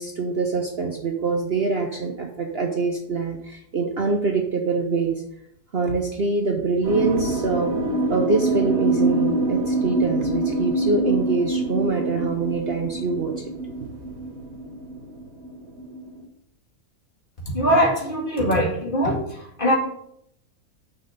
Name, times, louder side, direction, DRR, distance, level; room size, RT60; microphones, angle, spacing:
voice 1, 0.0-5.2 5.7-7.7 8.1-13.5, right 4 dB, 50° right, 2 dB, 0.9 m, -24 dB
sound 1, 6.8-16.2, right 2 dB, 70° right, 1.8 m, -25 dB
voice 2, 17.5-19.2 19.6-19.7, equal, 35° left, -2 dB, 2.2 m, -21 dB
6.1 x 5.3 x 6.7 m, 0.73 s
omnidirectional pair, 1.6 m